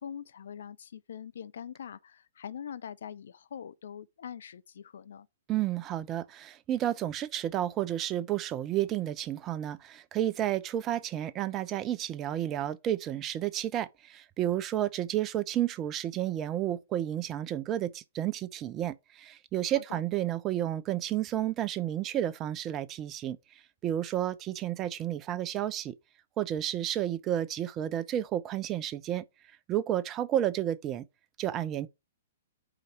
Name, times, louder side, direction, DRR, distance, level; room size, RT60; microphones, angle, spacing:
voice 1, 0.0-5.3 19.7-20.0, left 8 dB, 60° left, 0.4 m, -43 dB
voice 2, 5.5-23.4 23.8-26.0 26.4-29.2 29.7-31.0 31.4-31.9, right 12 dB, 25° right, 0.5 m, -31 dB
5.1 x 4.0 x 5.8 m
figure-of-eight pair, 115°, 0 cm